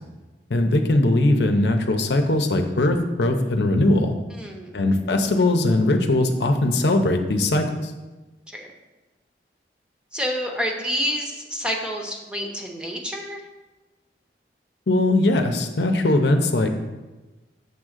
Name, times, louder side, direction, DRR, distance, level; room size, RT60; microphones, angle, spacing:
voice 1, 0.5-4.1 4.7-7.9 14.9-16.7, left 2 dB, 75° left, 5 dB, 0.7 m, -20 dB
voice 2, 4.4-4.7 8.5-8.7 10.1-13.4, equal, 5° right, 0 dB, 0.8 m, -28 dB
7.0 x 3.7 x 6.4 m, 1.2 s
head